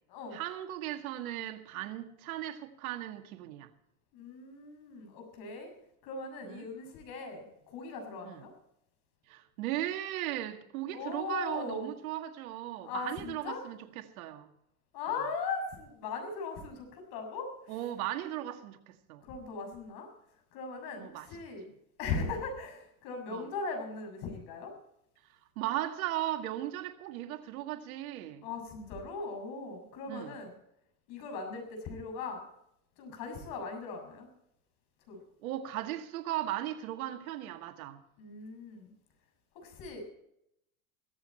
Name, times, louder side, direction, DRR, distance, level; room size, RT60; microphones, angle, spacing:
voice 1, 0.3-3.7 6.4-6.7 8.2-8.4 9.3-14.5 17.7-19.2 21.0-21.3 23.3-23.5 25.6-28.5 30.1-30.4 33.3-33.5 35.4-38.0, right 13 dB, 75° right, 1.9 m, -37 dB
voice 2, 4.1-5.7 6.0-8.5 10.9-11.9 12.8-13.7 14.9-17.8 19.2-20.1 20.5-21.7 22.0-24.7 28.4-30.5 31.1-32.4 33.0-34.3 35.1-35.2 38.2-38.9 39.6-40.1, left 4 dB, 60° left, 7.0 m, -39 dB
17.0 x 14.5 x 4.3 m
supercardioid pair, 115°, 42 cm